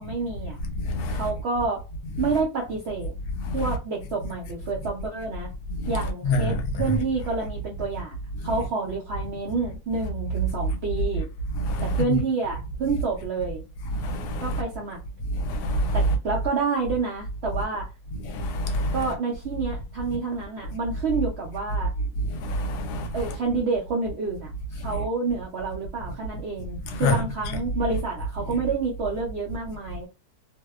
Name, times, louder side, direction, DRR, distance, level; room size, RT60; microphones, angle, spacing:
voice 1, 0.0-0.6 1.1-1.8 2.2-3.1 3.5-5.5 5.9-11.3 11.8-13.6 14.4-15.0 15.9-17.9 18.9-21.9 23.1-30.1, right 4 dB, 65° right, 0.6 m, -29 dB
voice 2, 0.8-1.3 3.4-3.6 5.8-5.9 6.2-7.0 8.4-8.5 11.6-12.0 13.9-14.6 15.3-16.1 18.3-19.0 22.3-23.3 24.8-25.0 26.8-27.2, left 1 dB, 85° left, 1.2 m, -26 dB
2.7 x 2.1 x 2.2 m
omnidirectional pair, 1.7 m